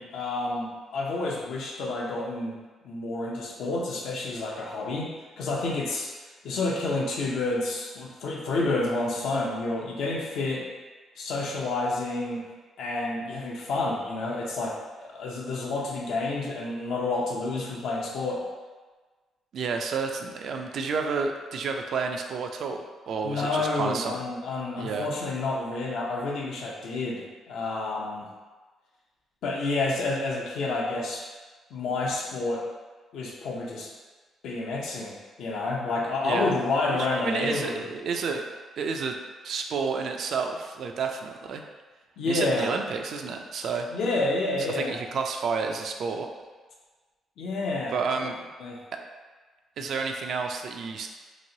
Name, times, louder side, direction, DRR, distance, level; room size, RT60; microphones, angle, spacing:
voice 1, 0.0-2.6 2.8-6.1 6.4-10.7 11.2-12.4 12.8-18.4 23.2-28.3 29.4-31.2 31.7-32.6 33.1-33.9 34.4-37.8 42.2-42.7 43.9-44.9 47.4-48.3 48.6-48.8, left 2 dB, 75° left, -3 dB, 0.6 m, -29 dB
voice 2, 19.5-24.2 24.8-25.1 36.2-36.6 36.9-38.5 38.8-39.2 39.4-41.6 42.3-43.9 44.7-46.3 47.9-48.3 48.9-49.0 49.8-51.1, right 5 dB, 65° right, 4 dB, 0.3 m, -30 dB
3.0 x 2.9 x 2.7 m, 1.3 s
cardioid pair, 90°, 0 cm